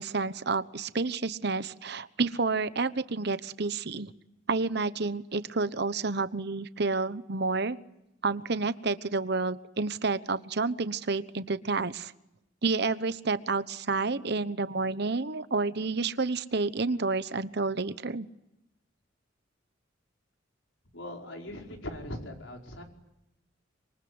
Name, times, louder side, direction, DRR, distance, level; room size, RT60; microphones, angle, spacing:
voice 1, 0.0-4.1 4.5-7.8 8.2-12.1 12.6-18.3, right 3 dB, 60° right, 13 dB, 1.1 m, -29 dB
voice 2, 20.9-22.8, left 1 dB, 85° left, 2 dB, 5.1 m, -40 dB
26.0 x 23.5 x 9.7 m, 0.87 s
head